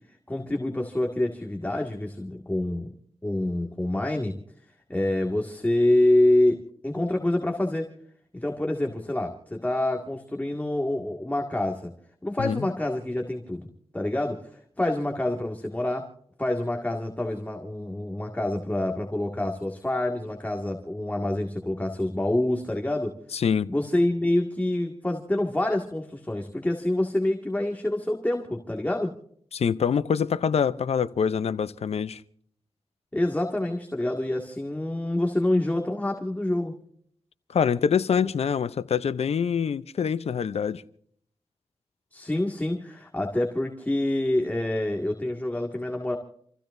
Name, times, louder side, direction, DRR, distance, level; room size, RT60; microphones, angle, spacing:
voice 1, 0.3-2.9 3.2-4.3 4.9-6.6 6.8-7.9 8.3-11.9 12.2-13.7 13.9-14.5 14.8-16.1 16.4-23.1 23.7-29.1 33.1-36.7 42.1-46.2, left 1 dB, 15° left, 2.0 m, -26 dB
voice 2, 23.3-23.7 29.5-32.2 37.5-40.8, left 7 dB, 80° left, 0.6 m, -25 dB
28.5 x 15.5 x 2.6 m
wide cardioid pair, 80°, 11 cm